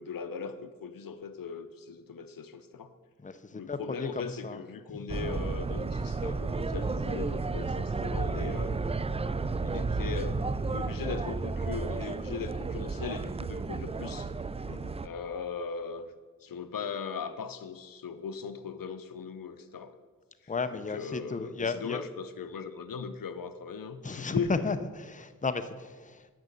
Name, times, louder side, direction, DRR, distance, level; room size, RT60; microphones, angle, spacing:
voice 1, 0.0-2.9 3.5-8.9 9.6-10.4 10.7-14.3 15.0-16.1 16.4-20.0 20.4-24.7, left 5 dB, 80° left, 10 dB, 0.6 m, -39 dB
voice 2, 3.2-4.6 4.9-5.2 8.0-8.1 14.7-15.0 20.5-22.0 24.0-26.3, left 4 dB, 25° left, 10 dB, 0.6 m, -34 dB
sound 1, 5.1-15.1, right 3 dB, 20° right, 0.3 m, -32 dB
8.3 x 6.0 x 6.7 m, 1.4 s
cardioid pair, 40°, 33 cm